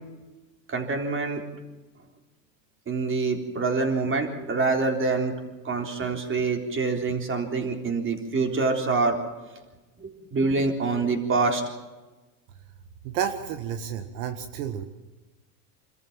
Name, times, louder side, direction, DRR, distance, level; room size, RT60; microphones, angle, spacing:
voice 1, 0.7-1.4 2.9-5.4 5.6-9.2 10.0-11.6, right 3 dB, 25° right, 4 dB, 3.9 m, -26 dB
voice 2, 13.0-14.8, right 8 dB, 65° right, 8 dB, 1.8 m, -31 dB
27.0 x 14.0 x 7.4 m, 1.2 s
supercardioid pair, 115°, 50 cm